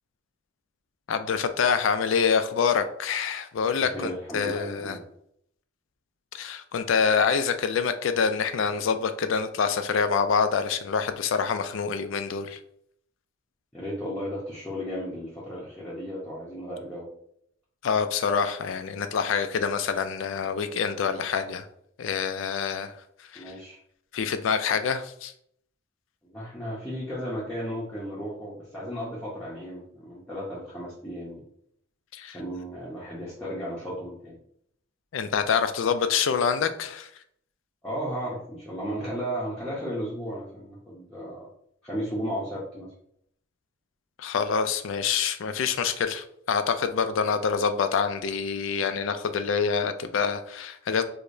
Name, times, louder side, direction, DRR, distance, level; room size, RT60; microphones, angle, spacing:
voice 1, 1.1-5.0 6.3-12.6 17.8-21.7 22.0-22.9 23.2-23.4 24.1-25.3 32.1-32.4 35.1-37.1 44.2-51.0, left 6 dB, 75° left, 9 dB, 0.4 m, -26 dB
voice 2, 3.8-5.0 13.7-17.1 23.3-23.8 26.2-31.4 32.3-34.4 37.8-41.5 41.8-42.9, equal, 5° left, -9 dB, 0.7 m, -34 dB
4.7 x 2.1 x 2.6 m, 0.69 s
head